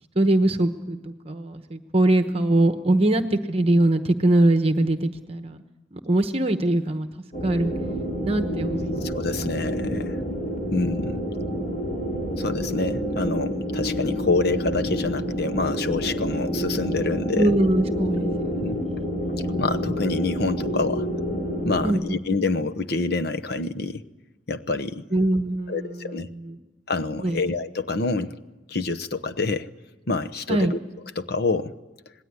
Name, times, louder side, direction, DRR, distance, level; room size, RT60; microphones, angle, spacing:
voice 1, 0.1-5.6 5.9-7.1 7.4-7.8 8.2-9.5 10.6-10.7 11.2-11.4 17.3-18.6 21.8-22.0 25.1-26.6 27.1-27.4 30.5-30.7, right 1 dB, 30° right, 7 dB, 1.0 m, -22 dB
sound 1, 7.3-21.9, equal, 40° left, 4.9 m, -28 dB
voice 2, 9.0-10.2 10.7-11.2 12.4-17.5 18.2-18.8 19.6-21.1 21.6-24.0 24.5-25.1 25.7-26.3 26.9-28.4 28.7-29.7 30.1-30.8 31.2-31.7, left 3 dB, 55° left, 9 dB, 1.0 m, -27 dB
26.5 x 20.0 x 9.6 m, 1.1 s
head